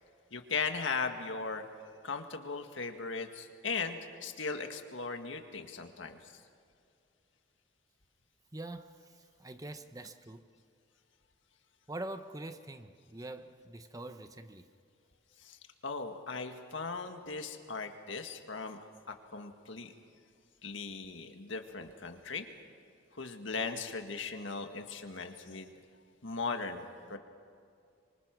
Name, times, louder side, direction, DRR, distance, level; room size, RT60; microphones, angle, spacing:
voice 1, 0.3-1.6 2.0-6.3 15.4-18.8 19.1-19.9 20.6-22.5 23.1-25.7 26.2-27.2, left 4 dB, 75° left, 1.9 m, -38 dB
voice 2, 8.5-10.5 11.9-14.7, right 2 dB, 20° right, 0.8 m, -44 dB
25.5 x 25.0 x 6.1 m
head